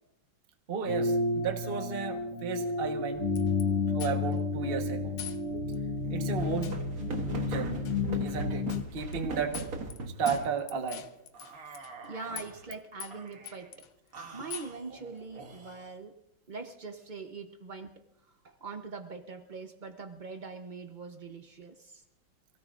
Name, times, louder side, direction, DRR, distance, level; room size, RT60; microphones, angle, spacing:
voice 1, 0.7-3.2 3.9-5.1 6.1-6.8 7.4-7.8 8.2-9.6 10.2-11.0, right 6 dB, 30° right, 4 dB, 1.3 m, -33 dB
sound 1, 0.9-8.8, left 3 dB, 45° left, 1.1 m, -31 dB
sound 2, 3.4-3.6 4.0-4.4 5.2-5.4 5.7-5.8 6.6-6.8 7.8-8.0 8.7-8.9 9.1-9.2 9.5-10.0 10.3-12.1 12.4-12.7 13.0-13.9 14.5-14.8, left 9 dB, 65° left, 1.4 m, -43 dB
sound 3, 6.1-10.5 11.3-12.6 13.1-13.7 14.1-16.0, right 3 dB, 50° right, 1.6 m, -41 dB
voice 2, 12.0-13.7 14.3-16.2 16.5-18.0 18.4-22.0, right 4 dB, 75° right, 5 dB, 0.4 m, -43 dB
26.5 x 17.0 x 2.5 m, 0.85 s
omnidirectional pair, 2.3 m